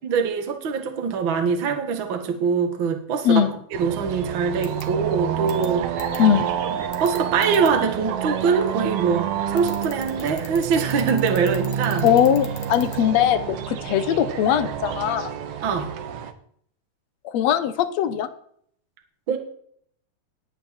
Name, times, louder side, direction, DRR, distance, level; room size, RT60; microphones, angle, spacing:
voice 1, 0.0-3.4 3.8-5.8 7.0-12.1 15.6-15.9 19.3-19.4, right 5 dB, 45° right, 5 dB, 2.0 m, -23 dB
voice 2, 3.2-3.6 6.2-6.6 12.0-15.3 17.2-18.3, left 10 dB, 65° left, 11 dB, 1.9 m, -20 dB
sound 1, 3.7-16.3, right 9 dB, 60° right, 1.7 m, -28 dB
sound 2, 4.6-4.8 5.5-5.7 6.0-6.2 6.9-7.7 9.6-13.0, left 7 dB, 50° left, 1.9 m, -39 dB
19.5 x 8.4 x 4.5 m, 0.63 s
omnidirectional pair, 3.9 m